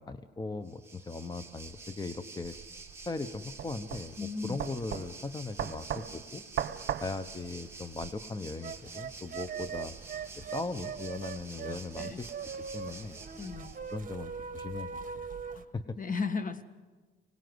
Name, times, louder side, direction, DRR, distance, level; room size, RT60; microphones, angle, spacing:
voice 1, 0.0-2.6 3.1-6.4 7.0-10.0 10.3-12.3 12.7-13.2 13.9-14.9 15.1-15.2 15.7-16.0, left 3 dB, 20° left, 11 dB, 1.0 m, -38 dB
Waves surf, 0.6-14.0, right 3 dB, 15° right, 2.4 m, -49 dB
sound 1, 2.4-8.1, right 10 dB, 65° right, 1.1 m, -38 dB
voice 2, 4.2-4.6 11.6-12.2 13.4-13.7 15.5-15.7 16.0-16.6, left 4 dB, 40° left, 10 dB, 1.7 m, -35 dB
sound 2, 8.6-15.6, right 6 dB, 40° right, 1.5 m, -41 dB
25.0 x 19.0 x 8.0 m, 1.3 s
cardioid pair, 90°, 20 cm